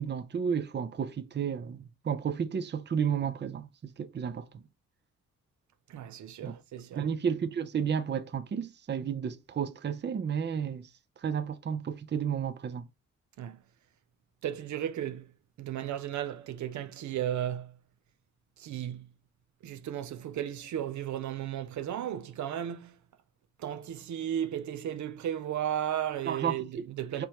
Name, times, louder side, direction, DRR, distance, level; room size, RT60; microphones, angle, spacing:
voice 1, 0.0-3.7 4.0-4.5 6.4-6.5 6.9-10.9 11.2-12.9 26.2-26.6 27.2-27.3, right 7 dB, 35° right, 0.6 m, -32 dB
voice 2, 5.9-7.1 13.4-13.6 14.4-15.3 15.6-17.8 18.6-19.1 19.6-23.0 23.6-27.3, right 10 dB, 75° right, 0.6 m, -35 dB
5.2 x 3.0 x 3.0 m
cardioid pair, 90°, 29 cm